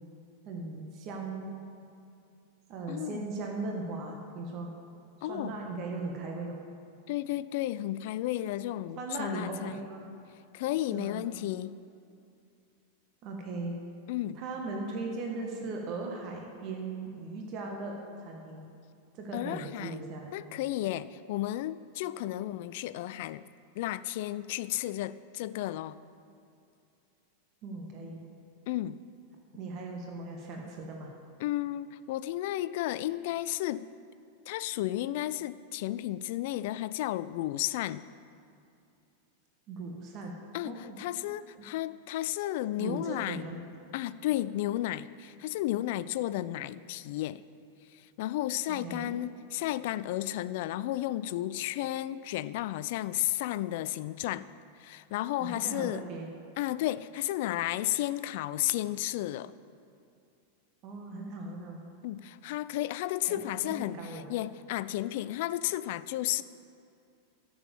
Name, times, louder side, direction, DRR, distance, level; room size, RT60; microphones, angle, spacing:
voice 1, 0.4-1.5 2.7-4.7 5.2-6.6 8.9-10.0 10.9-11.2 13.2-13.8 14.3-18.7 19.1-20.3 27.6-28.2 29.5-31.1 39.7-41.0 42.8-43.6 46.3-46.4 48.7-49.1 55.4-56.3 60.8-61.8 63.3-64.3, right 3 dB, 40° right, 1 dB, 1.7 m, -38 dB
voice 2, 2.9-3.3 5.2-5.6 7.1-9.7 10.5-11.8 14.1-14.4 19.3-20.0 20.3-23.4 23.8-26.0 28.7-29.0 31.4-33.9 34.5-38.0 40.5-43.4 43.9-47.4 47.9-54.5 54.8-56.0 56.6-59.5 62.0-66.4, left 14 dB, 50° left, 16 dB, 0.4 m, -33 dB
11.5 x 7.9 x 7.0 m, 2.6 s
figure-of-eight pair, 90°, 0 cm